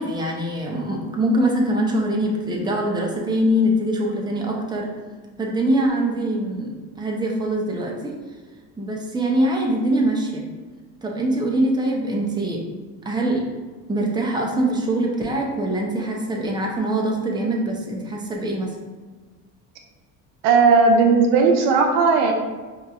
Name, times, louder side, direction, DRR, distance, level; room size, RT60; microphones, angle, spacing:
voice 1, 0.0-4.9 5.4-8.1 8.8-10.4 11.0-12.6 13.0-13.4 13.9-18.7, right 1 dB, 10° right, -1 dB, 0.7 m, -23 dB
voice 2, 20.4-22.3, right 4 dB, 70° right, 2 dB, 0.7 m, -16 dB
4.6 x 2.7 x 2.3 m, 1.4 s
hypercardioid pair, 65°, 48 cm